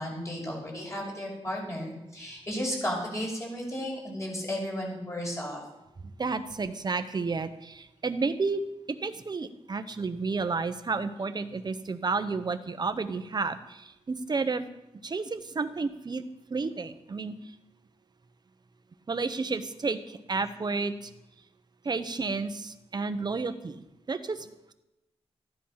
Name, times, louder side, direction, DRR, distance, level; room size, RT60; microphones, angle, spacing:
voice 1, 0.0-5.6, equal, 25° left, -2 dB, 6.0 m, -34 dB
voice 2, 6.2-8.6 8.9-14.7 15.0-16.2 16.5-17.3 19.1-21.1 21.8-24.7, right 4 dB, 40° right, 10 dB, 1.0 m, -31 dB
14.5 x 11.0 x 5.8 m, 0.93 s
wide cardioid pair, 125°, 11 cm